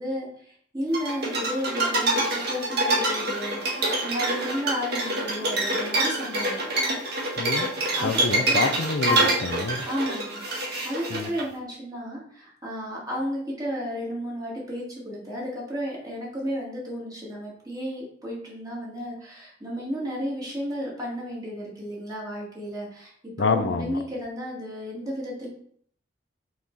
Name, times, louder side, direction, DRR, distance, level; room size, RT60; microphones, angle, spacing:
voice 1, 0.0-6.5 7.7-8.1 8.5-8.6 9.9-23.1 23.4-25.5, equal, 20° right, -5 dB, 2.4 m, -33 dB
sound 1, 0.9-11.4, right 2 dB, 60° right, 1.8 m, -26 dB
voice 2, 7.4-7.7 8.0-9.8 11.1-11.3 23.4-24.0, left 4 dB, 80° left, 8 dB, 0.6 m, -27 dB
5.7 x 4.7 x 4.1 m, 0.62 s
head